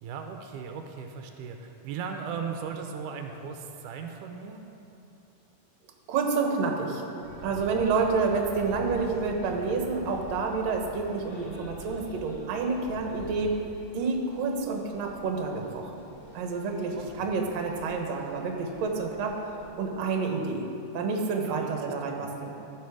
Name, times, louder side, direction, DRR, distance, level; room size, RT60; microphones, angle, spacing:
voice 1, 0.0-4.6 16.9-17.1 21.4-22.3, right 6 dB, 90° right, 4 dB, 2.2 m, -37 dB
voice 2, 6.1-7.0 7.4-13.6 13.9-16.0 16.3-19.4 19.8-20.6 20.9-22.5, right 4 dB, 65° right, 2 dB, 2.2 m, -29 dB
athens street musicians, 7.2-19.7, equal, 35° left, 3.2 m, -46 dB
14.5 x 6.7 x 4.8 m, 2.8 s
omnidirectional pair, 3.6 m